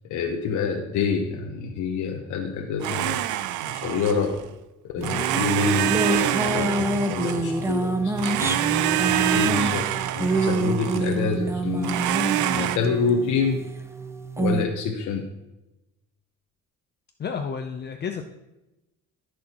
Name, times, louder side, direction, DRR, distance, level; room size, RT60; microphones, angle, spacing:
voice 1, 0.1-3.2 3.7-4.4 4.8-12.0 12.5-13.6 14.4-15.3, left 5 dB, 75° left, 2 dB, 1.1 m, -27 dB
Domestic sounds home sounds, 2.8-4.5 5.0-7.8 8.2-11.2 11.8-12.8, right 13 dB, 85° right, 0.5 m, -26 dB
sound 1, 5.0-14.7, right 2 dB, 10° right, 0.6 m, -27 dB
voice 2, 17.2-18.3, left 6 dB, 35° left, 5 dB, 0.6 m, -31 dB
14.5 x 6.4 x 3.0 m, 0.97 s
cardioid pair, 135°, 30 cm